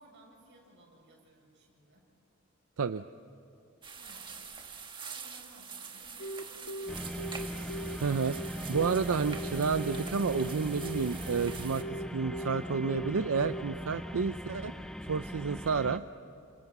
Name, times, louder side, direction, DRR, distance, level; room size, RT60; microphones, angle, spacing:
voice 1, 0.0-2.1 4.0-4.5 5.0-8.2, right 1 dB, 60° right, -1 dB, 7.5 m, -59 dB
sound 1, 3.8-11.8, right 5 dB, 25° right, 1.6 m, -45 dB
Telephone, 6.2-13.6, right 1 dB, 75° left, 1.8 m, -39 dB
sound 2, 6.9-16.0, equal, 5° left, 0.7 m, -40 dB
voice 2, 8.0-8.4 8.7-11.8 12.1-14.7 15.1-16.0, right 5 dB, 85° right, 11 dB, 0.6 m, -30 dB
29.5 x 27.5 x 6.0 m, 2.7 s
head